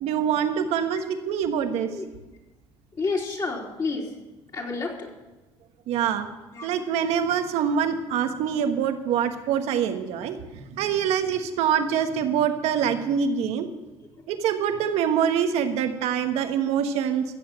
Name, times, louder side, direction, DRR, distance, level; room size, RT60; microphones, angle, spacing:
voice 1, 0.0-1.9 5.9-6.3 6.6-13.7 14.3-17.2, right 8 dB, 80° right, 7 dB, 1.3 m, -25 dB
voice 2, 3.0-4.1 4.5-5.1 6.5-6.7, left 4 dB, 40° left, -2 dB, 3.4 m, -29 dB
16.0 x 7.2 x 7.5 m, 1.1 s
cardioid pair, 95°, 11 cm